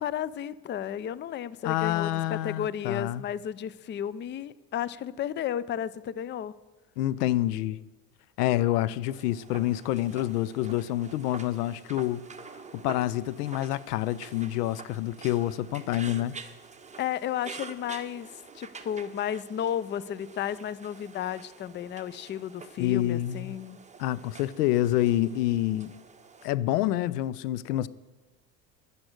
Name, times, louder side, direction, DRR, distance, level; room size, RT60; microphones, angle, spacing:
voice 1, 0.0-6.5 17.0-18.3 18.5-23.8, left 9 dB, 25° left, 0.5 m, -33 dB
voice 2, 1.6-3.2 7.0-7.8 8.4-12.2 12.8-16.4 22.8-23.6 24.0-25.9 26.4-27.9, left 14 dB, 80° left, 0.6 m, -27 dB
sound 1, 9.1-26.5, right 4 dB, 15° right, 1.2 m, -47 dB
11.0 x 10.5 x 6.5 m
hypercardioid pair, 75°, 46 cm